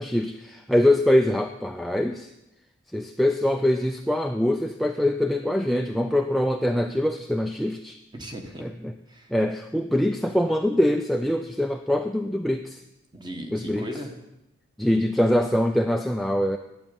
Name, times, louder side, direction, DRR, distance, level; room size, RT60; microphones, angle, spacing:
voice 1, 0.0-2.3 2.9-8.0 8.6-8.9 9.3-12.8 13.5-13.9 14.8-16.6, left 1 dB, ahead, 4 dB, 0.3 m, -23 dB
voice 2, 8.1-8.6 9.1-9.3 13.1-14.1, equal, 20° right, 4 dB, 1.3 m, -37 dB
11.0 x 7.8 x 7.0 m, 0.92 s
head